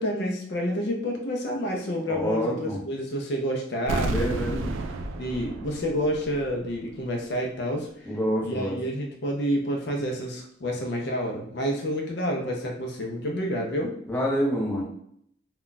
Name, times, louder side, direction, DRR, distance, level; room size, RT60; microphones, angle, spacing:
voice 1, 0.0-4.6 5.2-8.2 8.4-14.0, equal, 55° left, 1 dB, 0.4 m, -29 dB
voice 2, 2.1-2.8 4.1-4.8 8.1-8.8 14.1-14.8, equal, 10° left, -4 dB, 0.6 m, -27 dB
sound 1, 3.9-6.8 7.0-7.1, right 2 dB, 80° right, 0.3 m, -32 dB
2.2 x 2.2 x 3.8 m, 0.67 s
head